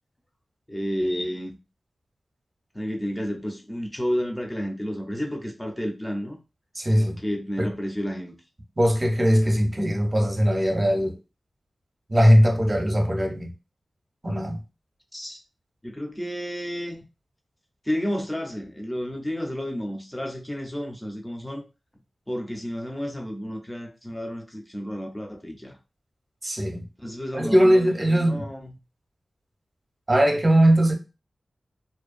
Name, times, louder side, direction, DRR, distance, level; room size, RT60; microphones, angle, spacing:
voice 1, 0.7-1.6 2.7-6.4 7.2-8.4 15.1-15.4 15.8-17.1 17.8-21.6 22.3-25.8 27.0-28.8, equal, 10° left, 0.6 m, -31 dB
voice 2, 6.8-7.2 7.6-7.7 8.8-11.2 12.1-13.5 14.2-14.6 26.4-26.8 27.3-28.5 30.1-30.9, equal, 25° right, 0.7 m, -20 dB
2.6 x 2.2 x 2.4 m
wide cardioid pair, 65°, 0 cm